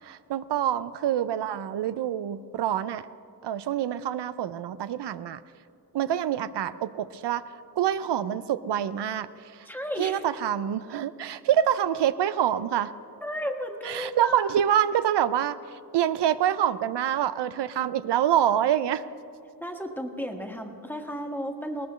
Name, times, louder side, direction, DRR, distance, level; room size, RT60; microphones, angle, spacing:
voice 1, 0.0-3.1 3.4-5.4 5.9-9.7 10.0-12.9 13.8-19.0, right 10 dB, 90° right, 13 dB, 0.5 m, -26 dB
voice 2, 9.6-10.2 13.2-14.4 19.6-21.9, equal, 5° left, 3 dB, 1.6 m, -33 dB
19.5 x 19.0 x 3.1 m, 2.5 s
cardioid pair, 65°, 41 cm